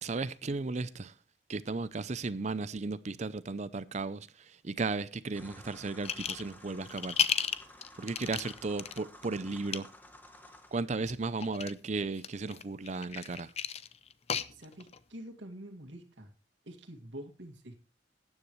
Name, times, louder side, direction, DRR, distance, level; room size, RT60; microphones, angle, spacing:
voice 1, 0.0-1.1 1.5-7.2 8.0-9.9 10.7-13.5, right 3 dB, 40° right, 0.5 m, -35 dB
sound 1, 5.3-10.8, left 1 dB, 10° left, 1.1 m, -53 dB
sound 2, 6.1-6.5 6.9-9.0 9.5-9.8 11.0-11.8 12.2-15.0, left 8 dB, 35° left, 0.5 m, -33 dB
voice 2, 14.5-16.3 16.6-17.8, right 1 dB, 90° right, 2.2 m, -47 dB
14.5 x 9.7 x 3.1 m
head